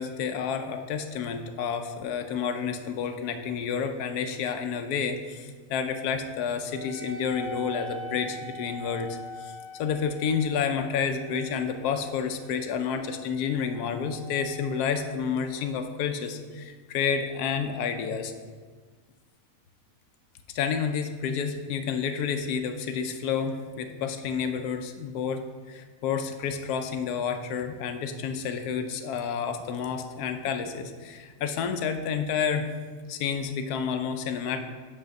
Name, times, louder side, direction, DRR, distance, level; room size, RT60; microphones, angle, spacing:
voice 1, 0.0-18.3 20.5-32.7 33.1-34.6, left 6 dB, 90° left, 7 dB, 1.1 m, -30 dB
Wind instrument woodwind instrument, 6.7-15.7, left 1 dB, 35° right, 2.5 m, -43 dB
7.6 x 3.5 x 6.3 m, 1.5 s
omnidirectional pair, 1.6 m